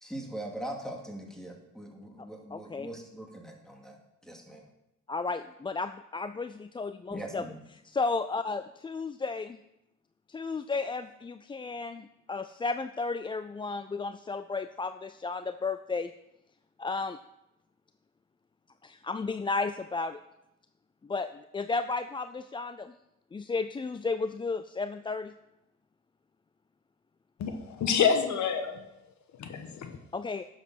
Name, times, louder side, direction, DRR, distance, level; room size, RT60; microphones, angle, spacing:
voice 1, 0.0-4.0 4.2-4.7 7.1-7.6, right 1 dB, ahead, 1 dB, 2.4 m, -41 dB
voice 2, 2.5-2.9 5.1-7.4 7.9-9.6 10.3-16.1 16.8-17.2 18.8-20.2 21.0-22.9 23.3-25.3 30.1-30.5, left 4 dB, 15° left, 11 dB, 0.3 m, -33 dB
voice 3, 27.4-28.8 29.3-30.0, left 6 dB, 70° left, 7 dB, 1.3 m, -28 dB
11.0 x 7.2 x 5.7 m, 0.88 s
cardioid pair, 90°, 30 cm